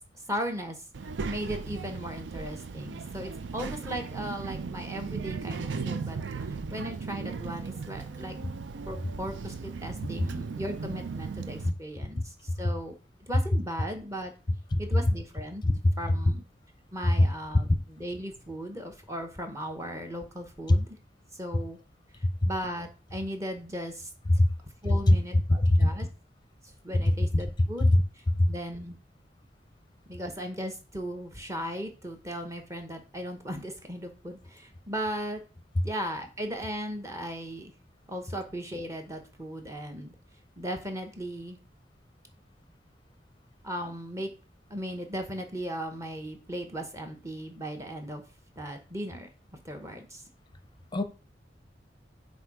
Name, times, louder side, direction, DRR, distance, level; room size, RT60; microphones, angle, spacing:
voice 1, 0.3-0.8 1.3-6.2 6.7-8.3 8.8-12.9 13.2-14.3 14.8-15.6 16.0-16.4 16.9-21.0 21.3-21.8 22.4-24.1 24.8-26.1 26.8-29.0 30.1-35.4 35.8-37.7 38.1-40.1 40.6-41.6 43.6-44.3 44.7-48.2 48.6-49.3 49.6-50.2, equal, 15° right, 0.8 m, -37 dB
Child speech kid speaking, 0.9-11.7, right 4 dB, 90° right, 0.5 m, -37 dB
voice 2, 11.7-11.8 14.7-14.8 15.6-15.7 17.2-17.3 20.7-20.8 22.4-22.5 24.4-24.5 25.1-25.2 25.6-25.9 27.1-27.2 27.9-28.0 28.4-28.5 50.9-51.0, left 1 dB, 25° left, 0.5 m, -20 dB
7.9 x 2.6 x 4.8 m
head